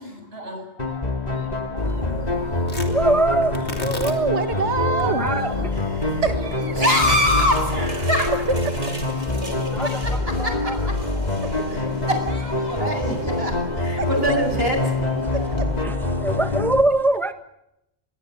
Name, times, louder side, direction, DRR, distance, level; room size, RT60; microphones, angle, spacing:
voice 1, 0.0-3.1 4.2-4.3 4.9-6.2 6.8-8.3 9.2-10.1 10.4-10.8 11.1-15.6, equal, 60° right, 5 dB, 8.5 m, -27 dB
sound 1, 0.8-16.8, left 2 dB, 35° left, 2.8 m, -25 dB
sound 2, 1.8-15.8, right 1 dB, 40° right, 3.9 m, -44 dB
Tearing, 2.6-11.0, left 2 dB, 75° left, 4.3 m, -40 dB
voice 2, 2.9-3.6 5.2-5.7 9.7-10.8 15.8-15.9 16.2-17.3, right 2 dB, ahead, 9 dB, 1.5 m, -22 dB
voice 3, 3.8-5.4 6.2-6.8 8.6-8.7 9.1-9.2 11.4-11.5 14.0-14.4 15.3-15.7, right 4 dB, 90° right, 8 dB, 2.0 m, -26 dB
25.5 x 22.5 x 7.8 m, 0.82 s
omnidirectional pair, 1.1 m